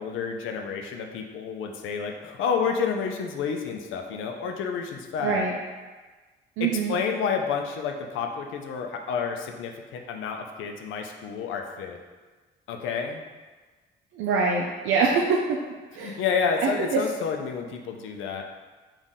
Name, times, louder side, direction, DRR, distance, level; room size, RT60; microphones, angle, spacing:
voice 1, 0.0-5.4 6.6-12.0 12.7-13.2 16.0-18.4, left 6 dB, 85° left, 4 dB, 0.5 m, -30 dB
voice 2, 5.2-5.5 6.6-6.9 14.1-15.6 15.9-16.2 16.6-17.0, right 4 dB, 85° right, -1 dB, 0.4 m, -24 dB
4.0 x 2.5 x 3.6 m, 1.3 s
cardioid pair, 90°, 20 cm